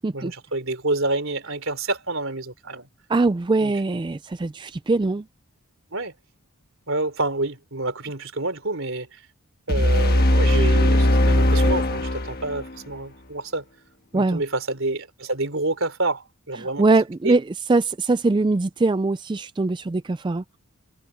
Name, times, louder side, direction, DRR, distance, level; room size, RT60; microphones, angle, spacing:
voice 1, 0.1-2.9 3.6-3.7 5.9-6.1 6.9-9.2 9.7-13.6 14.1-16.8 17.2-17.3, right 2 dB, 60° right, 4.1 m, -28 dB
voice 2, 3.1-5.2 14.1-14.4 16.6-20.4, right 3 dB, 20° right, 0.3 m, -22 dB
sound 1, 9.7-12.7, left 1 dB, 45° left, 1.5 m, -19 dB
head